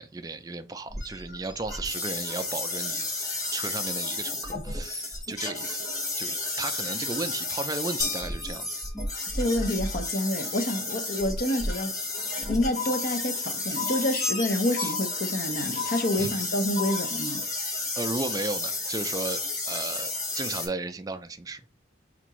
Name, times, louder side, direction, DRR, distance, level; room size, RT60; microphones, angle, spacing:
voice 1, 0.0-3.1 3.5-5.9 6.2-8.8 14.8-14.9 16.2-16.3 18.0-19.4 19.7-21.6, right 3 dB, 20° right, 0.3 m, -35 dB
sound 1, 0.9-20.7, left 2 dB, 20° left, 1.0 m, -32 dB
sound 2, 8.0-9.4, left 4 dB, 65° left, 1.4 m, -35 dB
voice 2, 9.3-11.9 12.5-17.4, left 1 dB, 50° left, 0.6 m, -28 dB
sound 3, 12.8-13.4 13.8-14.4 14.8-15.4 15.8-16.4 16.8-17.4, left 8 dB, 85° left, 0.9 m, -36 dB
4.5 x 2.5 x 3.0 m
head